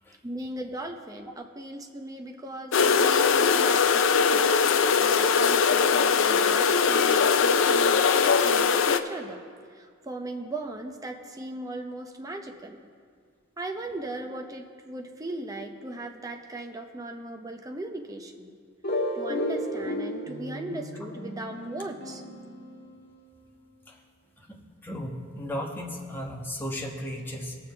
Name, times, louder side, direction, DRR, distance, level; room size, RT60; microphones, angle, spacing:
voice 1, 0.2-12.9 13.6-18.6 19.1-22.2, right 2 dB, 20° right, 3 dB, 0.8 m, -38 dB
sound 1, 2.7-9.0, left 6 dB, 70° left, 0.5 m, -21 dB
sound 2, 18.8-23.4, left 1 dB, 55° left, 1.3 m, -33 dB
voice 2, 24.8-27.6, equal, 10° left, -2 dB, 1.2 m, -35 dB
18.5 x 6.9 x 3.4 m, 2.1 s
head